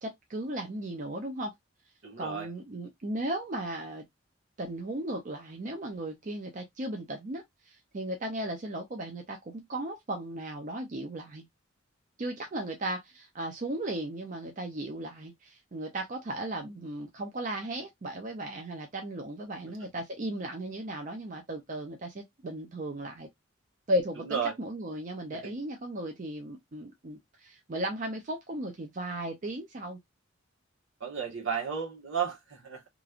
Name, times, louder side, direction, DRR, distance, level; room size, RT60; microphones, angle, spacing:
voice 1, 0.0-1.5 2.2-4.0 4.6-11.5 12.2-23.3 23.9-30.0, right 1 dB, 40° right, 0.5 m, -36 dB
voice 2, 2.0-2.5 24.2-24.5 25.3-25.5 31.0-32.9, right 7 dB, 75° right, 1.2 m, -33 dB
3.0 x 2.5 x 2.4 m
head